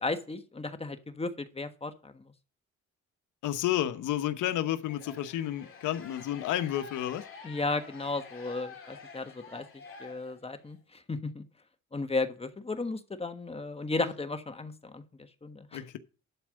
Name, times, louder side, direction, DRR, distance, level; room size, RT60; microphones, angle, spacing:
voice 1, 0.0-2.3 7.4-11.4 11.9-15.0 15.4-15.8, left 3 dB, 20° left, 1.3 m, -35 dB
voice 2, 3.4-7.2 15.7-16.0, left 12 dB, 85° left, 1.0 m, -31 dB
sound 1, 4.8-10.7, left 4 dB, 45° left, 2.7 m, -48 dB
11.5 x 4.6 x 6.4 m
cardioid pair, 90°, 30 cm